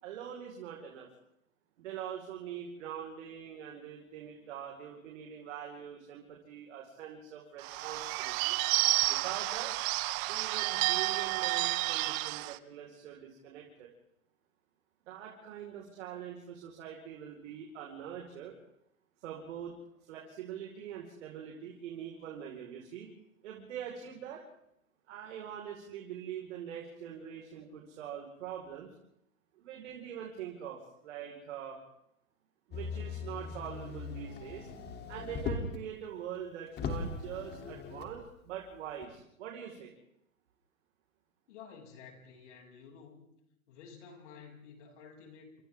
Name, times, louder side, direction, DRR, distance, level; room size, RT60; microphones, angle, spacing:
voice 1, 0.0-1.1 1.8-8.6 9.0-9.7 10.3-13.9 15.1-18.6 19.2-19.8 20.1-23.1 23.4-24.4 25.1-28.9 29.6-31.8 32.7-34.7 35.1-39.9, right 9 dB, 55° right, 0 dB, 5.0 m, -43 dB
Bird / Bell, 7.6-12.6, right 21 dB, 30° right, 0.7 m, -30 dB
Motor vehicle (road), 32.7-35.9 36.3-36.4 36.7-38.2 39.0-39.1, left 4 dB, 25° left, 3.3 m, -39 dB
voice 2, 41.5-43.3 43.7-45.6, left 6 dB, 60° left, 1 dB, 7.9 m, -52 dB
29.5 x 26.5 x 3.7 m, 0.78 s
hypercardioid pair, 130°, 41 cm